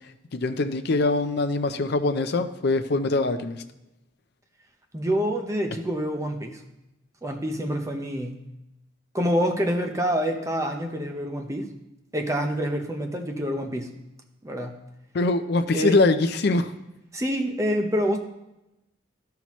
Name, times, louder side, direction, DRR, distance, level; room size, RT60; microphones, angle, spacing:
voice 1, 0.3-3.6 15.1-16.7, left 2 dB, 55° left, 8 dB, 0.5 m, -23 dB
voice 2, 4.9-6.6 7.2-8.4 9.1-11.7 12.1-13.9 14.4-14.8 15.7-16.0 17.1-18.2, equal, 15° right, 4 dB, 0.7 m, -27 dB
12.0 x 5.7 x 3.0 m, 0.92 s
head